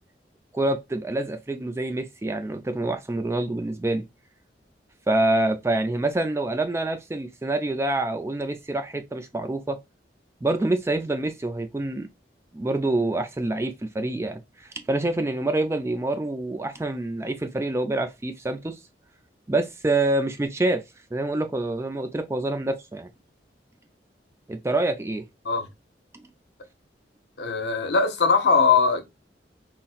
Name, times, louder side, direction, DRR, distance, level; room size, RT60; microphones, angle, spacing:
voice 1, 0.5-4.0 5.1-9.8 10.4-12.1 12.5-18.8 19.5-20.8 21.1-23.1 24.5-25.2, right 2 dB, 15° right, 0.3 m, -26 dB
voice 2, 27.4-29.0, left 5 dB, 65° left, 0.7 m, -20 dB
4.0 x 2.0 x 2.3 m
head